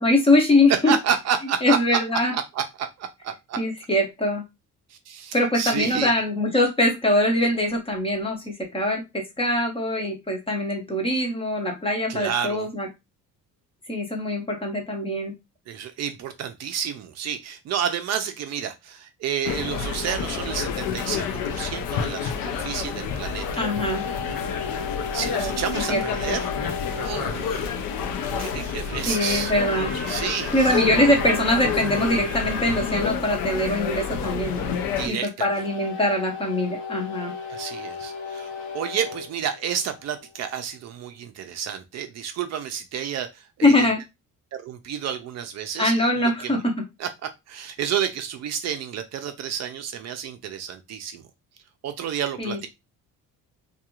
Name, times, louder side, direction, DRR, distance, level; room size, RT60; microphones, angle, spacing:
voice 1, 0.0-0.9 1.6-2.3 3.6-4.4 5.3-12.9 13.9-15.3 23.6-24.0 25.4-25.5 25.9-26.0 29.1-29.9 30.5-34.7 35.1-37.3 43.6-44.0 45.8-46.7 52.4-52.7, left 1 dB, 15° left, 2 dB, 0.5 m, -22 dB
voice 2, 0.9-2.0 2.3-3.6 4.9-6.1 12.1-12.7 15.7-23.6 25.1-26.5 26.9-27.8 28.4-29.5 30.1-30.8 35.0-35.5 37.5-43.9 44.5-46.6 47.0-47.1 47.5-51.3 51.8-52.7, right 8 dB, 50° right, 7 dB, 0.4 m, -30 dB
sound 1, 19.4-35.1, left 6 dB, 85° left, 0.5 m, -29 dB
sound 2, 23.4-27.3 29.0-33.1 35.4-40.3, left 4 dB, 55° left, 0.9 m, -35 dB
2.3 x 2.3 x 2.9 m, 0.22 s
cardioid pair, 160°, 34 cm